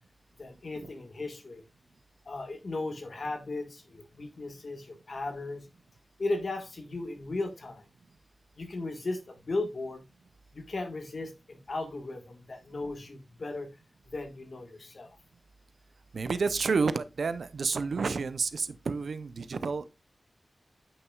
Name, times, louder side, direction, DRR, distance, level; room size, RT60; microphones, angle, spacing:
voice 1, 0.4-1.6 2.2-5.6 6.2-7.8 8.6-10.0 10.5-13.7 14.0-15.2, left 2 dB, 60° left, 1.6 m, -36 dB
voice 2, 16.1-19.9, right 4 dB, 80° right, 0.6 m, -30 dB
9.6 x 5.9 x 2.4 m
wide cardioid pair, 90°, 0 cm